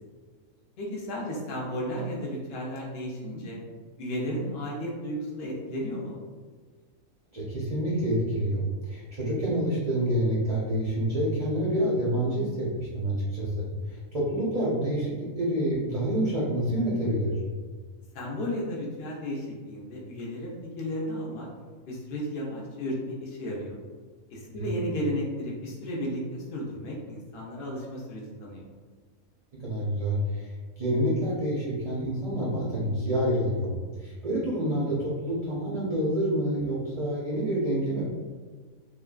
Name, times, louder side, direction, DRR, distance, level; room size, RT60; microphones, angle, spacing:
voice 1, 0.8-3.6 4.0-6.2 18.1-21.5 21.9-23.8 24.3-28.6, equal, 60° left, -3 dB, 0.7 m, -34 dB
voice 2, 7.3-17.4 24.6-24.7 29.6-38.0, right 1 dB, 50° right, -8 dB, 0.4 m, -28 dB
3.0 x 2.3 x 2.3 m, 1.5 s
omnidirectional pair, 1.5 m